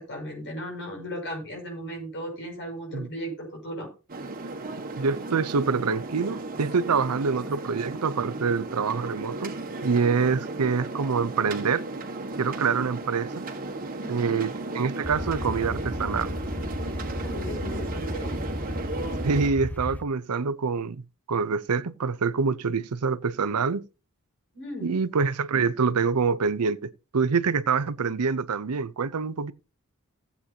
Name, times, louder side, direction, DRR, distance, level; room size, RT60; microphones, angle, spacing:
voice 1, 0.0-3.9 14.0-14.4 17.2-18.4 24.5-25.0, equal, 55° left, 6.0 m, -36 dB
sound 1, 4.1-19.5, right 2 dB, 40° right, 1.5 m, -35 dB
voice 2, 4.9-9.5 9.8-11.8 12.4-13.3 14.1-14.5 14.7-16.3 19.2-21.0 21.3-23.9 24.8-29.5, right 5 dB, 80° right, 0.6 m, -26 dB
sound 2, 15.0-20.0, left 1 dB, 5° left, 0.5 m, -34 dB
17.0 x 8.3 x 2.8 m
head